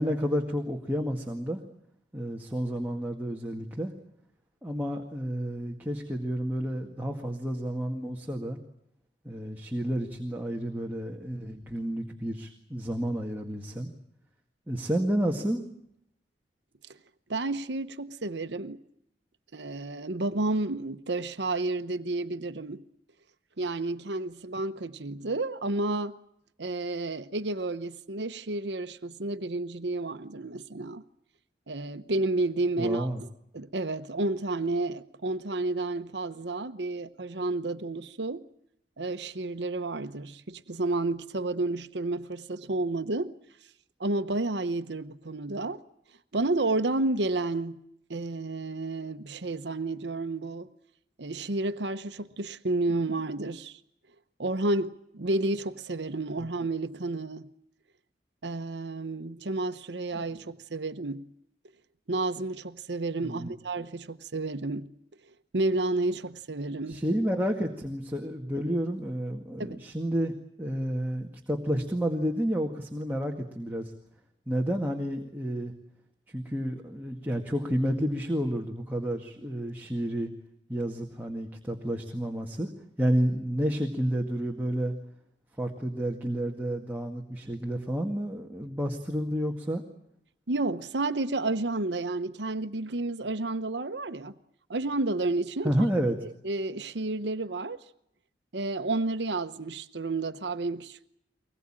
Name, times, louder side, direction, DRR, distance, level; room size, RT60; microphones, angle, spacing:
voice 1, 0.0-1.6 2.1-3.9 4.6-8.6 9.2-13.9 14.7-15.6 32.8-33.2 60.1-60.2 63.2-63.5 66.9-70.3 70.6-73.9 74.5-75.7 76.3-80.3 80.7-82.7 83.0-84.9 85.6-89.8 95.6-96.1, equal, 10° right, 1.9 m, -30 dB
voice 2, 17.3-18.8 19.5-22.8 23.6-26.1 26.6-31.0 31.7-33.1 33.5-38.4 39.0-43.3 44.0-45.8 46.3-47.8 48.1-50.7 51.2-53.8 54.4-57.5 58.4-61.3 62.1-64.9 65.5-67.0 69.6-69.8 90.5-94.3 94.7-95.9 96.2-97.8 98.5-101.1, right 2 dB, 75° right, 1.0 m, -31 dB
24.0 x 20.5 x 8.9 m
head